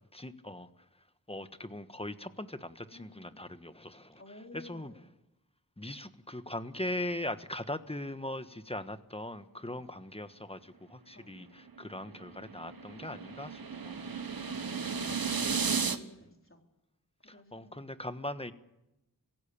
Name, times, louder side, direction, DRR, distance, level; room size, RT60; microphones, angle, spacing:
voice 1, 0.1-0.7 1.3-4.2 4.6-4.9 5.8-14.0 15.2-15.3 17.5-18.5, left 1 dB, 15° left, 11 dB, 1.4 m, -40 dB
voice 2, 2.9-3.6 4.1-5.1 9.7-9.9 11.1-11.5 15.6-16.6 17.2-17.9, left 2 dB, 35° left, 2 dB, 4.2 m, -55 dB
sound 1, 11.7-16.0, right 5 dB, 75° right, 1.3 m, -34 dB
23.5 x 16.5 x 8.9 m, 0.92 s
wide cardioid pair, 45°, 36 cm